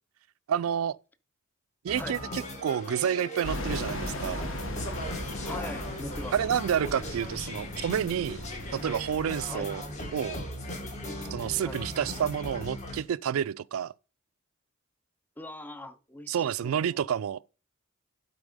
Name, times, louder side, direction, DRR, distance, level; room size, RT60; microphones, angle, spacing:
voice 1, 0.5-1.0 1.8-4.4 6.3-8.4 8.7-9.8 10.1-10.4 11.3-13.9 16.3-17.5, right 8 dB, 80° right, 0.3 m, -29 dB
sound 1, 1.9-13.0, equal, 35° left, 1.8 m, -38 dB
sound 2, 3.4-9.7, left 1 dB, 65° left, 1.3 m, -38 dB
voice 2, 5.4-6.3 9.5-9.7 11.6-11.8 15.4-17.0, left 1 dB, 10° left, 0.5 m, -41 dB
11.5 x 4.3 x 5.1 m
head